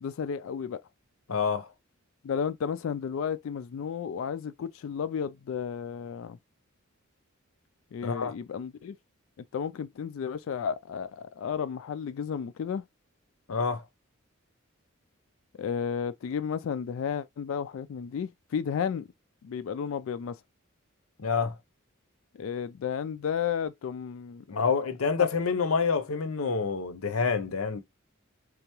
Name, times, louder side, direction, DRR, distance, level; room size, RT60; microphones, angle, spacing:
voice 1, 0.0-0.8 2.2-6.4 7.9-9.0 9.5-12.8 15.6-19.1 19.4-20.4 22.3-24.6 25.2-25.3, left 7 dB, 65° left, 0.3 m, -33 dB
voice 2, 1.3-1.7 8.0-8.3 13.5-13.8 21.2-21.6 24.5-27.8, left 5 dB, 85° left, 0.7 m, -27 dB
3.9 x 3.4 x 3.0 m
head